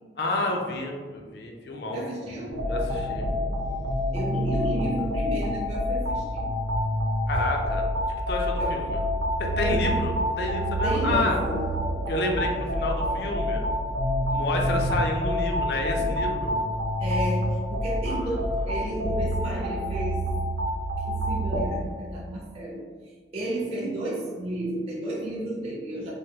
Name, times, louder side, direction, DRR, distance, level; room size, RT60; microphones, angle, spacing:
voice 1, 0.2-2.0 2.7-3.7 7.3-7.9 8.3-9.0 9.4-11.4 12.1-13.6 14.3-16.5 18.1-18.4, left 2 dB, 60° left, 1 dB, 0.4 m, -29 dB
voice 2, 1.9-2.5 4.1-6.5 8.6-8.8 9.9-10.0 10.8-11.6 17.0-20.2 21.0-22.8 23.3-26.1, right 1 dB, 35° right, -5 dB, 0.4 m, -32 dB
sound 1, 2.5-21.7, equal, 80° right, 0.6 m, -27 dB
3.2 x 2.2 x 2.8 m, 1.5 s
head